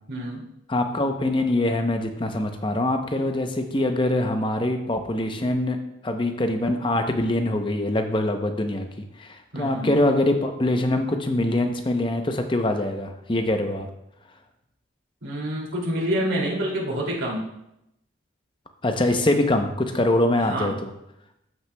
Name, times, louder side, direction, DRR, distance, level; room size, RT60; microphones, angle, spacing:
voice 1, 0.1-0.4 9.5-9.9 15.2-17.5 20.4-20.7, equal, 90° right, -4 dB, 2.5 m, -27 dB
voice 2, 0.7-5.8 6.0-8.9 9.2-13.9 18.8-20.9, left 1 dB, 25° left, 6 dB, 0.6 m, -24 dB
13.5 x 5.9 x 2.2 m, 0.84 s
head